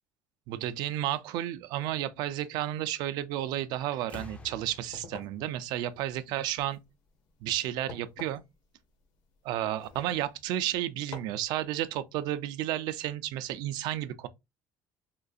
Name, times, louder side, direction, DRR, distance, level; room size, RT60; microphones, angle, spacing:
voice 1, 0.5-6.8 7.4-8.4 9.4-14.3, right 13 dB, 75° right, 0.4 m, -32 dB
sound 1, 3.4-3.7 4.0-6.7 7.9-8.0, left 3 dB, 15° left, 0.3 m, -50 dB
sound 2, 4.7-10.6 11.1-11.5, left 5 dB, 75° left, 0.8 m, -50 dB
3.7 x 2.4 x 2.5 m
cardioid pair, 160°, 7 cm